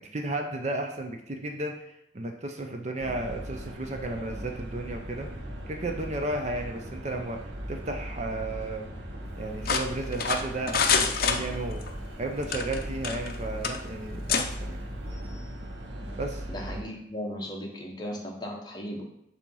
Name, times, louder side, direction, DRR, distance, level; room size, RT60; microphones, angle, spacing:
voice 1, 0.0-1.8 2.1-5.3 5.7-8.9 9.4-11.8 12.2-14.8 16.2-16.4, right 2 dB, 35° right, 3 dB, 0.5 m, -33 dB
sound 1, 3.0-16.8, equal, 70° right, 1.0 m, -38 dB
sound 2, 9.6-11.9 12.4-13.4 13.6-13.8 14.3-14.5, left 6 dB, 50° left, 0.6 m, -26 dB
voice 2, 16.5-19.0, equal, 20° left, 0 dB, 1.0 m, -36 dB
7.3 x 2.8 x 5.4 m, 0.81 s
head